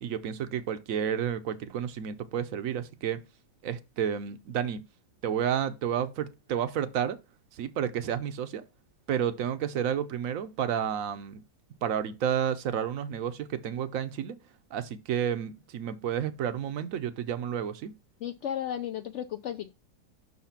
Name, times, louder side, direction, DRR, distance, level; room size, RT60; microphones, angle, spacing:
voice 1, 0.0-3.2 3.6-4.9 5.2-7.2 7.5-8.6 9.1-11.4 11.8-14.4 14.7-17.9, right 8 dB, 60° right, 1.0 m, -31 dB
voice 2, 18.2-19.7, left 10 dB, 90° left, 0.6 m, -34 dB
6.1 x 4.1 x 5.8 m
omnidirectional pair, 1.8 m